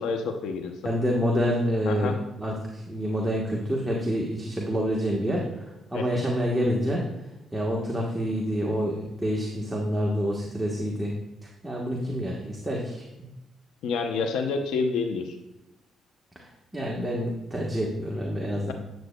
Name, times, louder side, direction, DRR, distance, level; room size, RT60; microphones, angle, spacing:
voice 1, 0.0-0.7 1.9-2.2 5.9-6.2 13.8-15.4, left 4 dB, 85° left, 5 dB, 0.6 m, -28 dB
voice 2, 0.8-7.0 7.5-11.1 11.4-13.3 16.3-18.7, equal, 10° right, -2 dB, 1.1 m, -28 dB
9.4 x 7.5 x 2.2 m, 0.96 s
cardioid pair, 90°, 0 cm